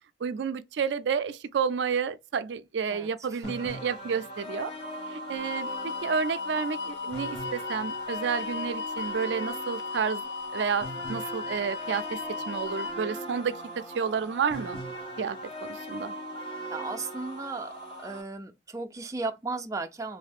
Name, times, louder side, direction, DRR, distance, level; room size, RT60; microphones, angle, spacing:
voice 1, 0.2-4.7 5.1-10.2 10.5-12.2 12.5-14.8 15.2-16.1, right 6 dB, 85° right, 0.4 m, -30 dB
voice 2, 2.9-3.5 16.7-17.7 18.0-20.2, right 3 dB, 20° right, 0.4 m, -35 dB
sound 1, 3.4-18.2, right 1 dB, 30° left, 1.1 m, -39 dB
sound 2, 5.3-13.0, left 5 dB, 75° left, 0.5 m, -36 dB
3.2 x 2.6 x 3.3 m
head